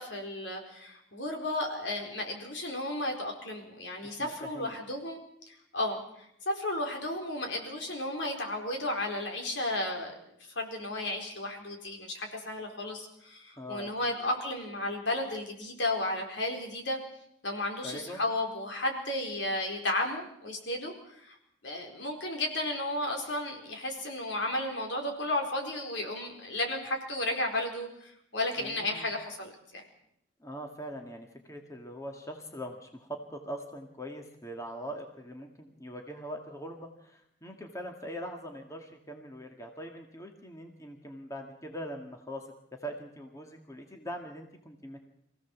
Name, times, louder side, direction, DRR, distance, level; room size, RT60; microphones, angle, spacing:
voice 1, 0.0-5.2 5.5-10.1 10.5-17.0 17.4-21.4 21.6-29.8, left 1 dB, 70° left, 2 dB, 4.5 m, -33 dB
voice 2, 4.0-4.8 13.6-14.1 17.8-18.2 28.6-29.1 30.4-42.5 42.8-45.0, equal, 15° left, 3 dB, 1.9 m, -42 dB
25.0 x 16.0 x 7.3 m, 0.76 s
head